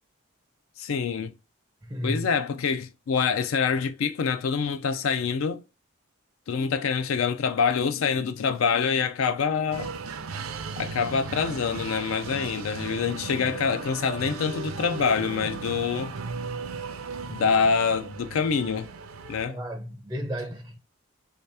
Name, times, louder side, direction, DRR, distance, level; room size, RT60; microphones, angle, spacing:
voice 1, 0.8-1.3 2.0-5.6 6.5-9.9 10.8-16.1 17.3-18.9 19.3-19.6, left 6 dB, 75° left, 0.4 m, -26 dB
voice 2, 1.9-2.3 19.5-20.8, equal, 15° right, 0.4 m, -33 dB
sound 1, 9.7-19.4, right 4 dB, 85° right, 0.5 m, -36 dB
3.2 x 2.8 x 3.3 m
head